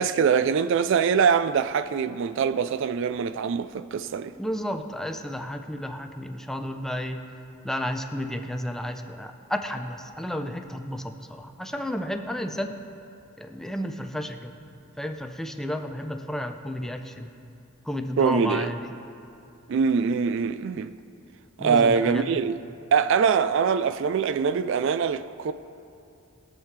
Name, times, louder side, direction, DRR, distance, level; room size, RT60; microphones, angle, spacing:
voice 1, 0.0-4.3 18.2-18.7 19.7-20.9 21.6-22.6 22.9-25.5, right 6 dB, 65° right, 0.3 m, -23 dB
voice 2, 4.4-7.2 7.6-12.7 13.4-14.6 15.0-17.3 17.8-18.9 21.6-22.4, equal, ahead, 0.5 m, -32 dB
21.0 x 7.5 x 3.3 m
head